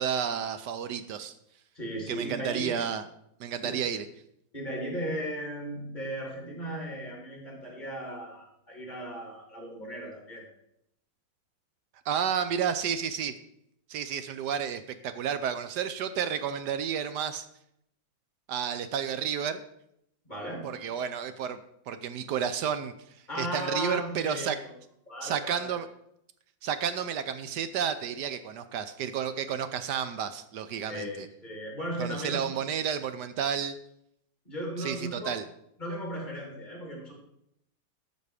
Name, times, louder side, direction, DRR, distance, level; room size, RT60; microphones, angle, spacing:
voice 1, 0.0-1.3 2.1-3.0 3.4-4.0 12.1-13.3 13.9-17.5 18.5-19.6 20.6-21.6 21.9-22.9 23.3-24.6 25.2-25.9 26.6-31.3 32.0-33.8 34.8-35.4, right 8 dB, 70° right, 11 dB, 1.1 m, -31 dB
voice 2, 1.7-2.8 3.6-3.8 4.5-10.5 20.2-20.6 23.3-24.7 25.1-25.8 30.9-32.6 34.4-35.4 35.8-37.1, equal, 20° left, -1 dB, 3.1 m, -36 dB
12.0 x 6.7 x 4.9 m, 0.76 s
omnidirectional pair, 2.2 m